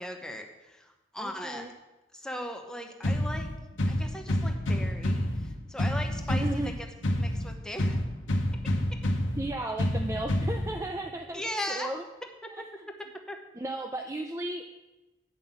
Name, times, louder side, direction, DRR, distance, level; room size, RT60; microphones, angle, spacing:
voice 1, 0.0-1.7 2.1-3.5 3.9-6.7 7.2-8.0 11.3-11.9 12.6-12.7 13.3-13.4, left 1 dB, 5° left, 3 dB, 0.9 m, -38 dB
voice 2, 1.2-1.7 6.3-6.8 9.4-11.4 11.7-12.0 12.5-12.6 13.6-14.7, right 1 dB, 15° right, 4 dB, 0.4 m, -35 dB
sound 1, 3.0-11.0, left 1 dB, 85° left, 1.1 m, -29 dB
9.0 x 5.6 x 7.5 m, 1.1 s
head